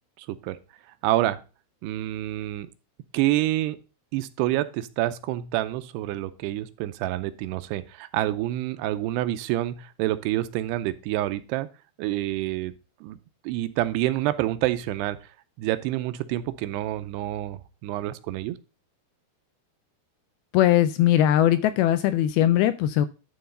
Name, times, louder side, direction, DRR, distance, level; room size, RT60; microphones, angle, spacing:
voice 1, 0.2-0.6 1.0-1.4 1.8-2.7 3.1-3.8 4.1-11.7 12.0-12.7 13.0-13.2 13.4-15.2 15.6-18.6, right 15 dB, 85° right, 12 dB, 2.7 m, -27 dB
voice 2, 20.5-23.1, left 12 dB, 85° left, 12 dB, 2.3 m, -20 dB
11.5 x 3.9 x 5.3 m, 0.32 s
omnidirectional pair, 4.7 m